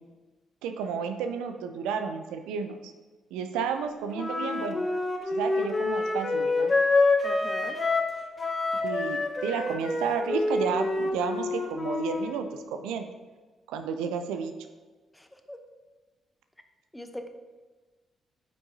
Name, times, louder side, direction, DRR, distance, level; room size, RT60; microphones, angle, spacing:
voice 1, 0.6-2.8 3.3-4.8 5.3-6.7 8.7-13.1 13.7-14.5, right 6 dB, 80° right, 8 dB, 0.4 m, -32 dB
Wind instrument woodwind instrument, 4.1-8.1 8.4-12.3, left 3 dB, 35° left, 1.2 m, -27 dB
voice 2, 7.2-7.8 15.1-15.6 16.9-17.3, left 1 dB, 10° left, 6 dB, 0.9 m, -41 dB
8.6 x 6.0 x 2.8 m, 1.3 s
hypercardioid pair, 45°, 0 cm